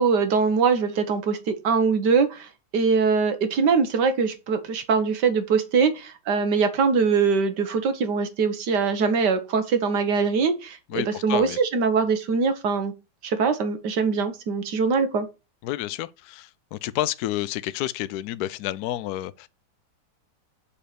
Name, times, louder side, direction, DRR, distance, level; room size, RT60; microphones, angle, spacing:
voice 1, 0.0-12.9 13.2-15.3, right 5 dB, 65° right, 1.7 m, -22 dB
voice 2, 10.9-11.6 15.6-19.5, left 14 dB, 70° left, 1.0 m, -30 dB
7.4 x 4.4 x 6.8 m
omnidirectional pair, 2.0 m